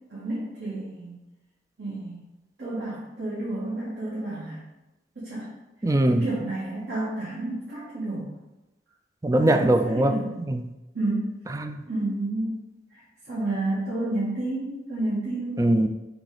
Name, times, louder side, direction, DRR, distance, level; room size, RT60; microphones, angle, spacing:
voice 1, 0.1-1.1 1.8-2.2 2.6-4.6 5.1-5.5 6.0-8.3 9.4-10.3 10.9-11.4 11.9-12.6 12.9-13.0 13.3-15.7, right 2 dB, 70° right, -9 dB, 1.6 m, -30 dB
voice 2, 5.8-6.3 9.2-10.6 11.5-11.8 15.6-15.9, right 1 dB, 20° right, 7 dB, 0.4 m, -22 dB
6.1 x 3.3 x 5.0 m, 1.0 s
head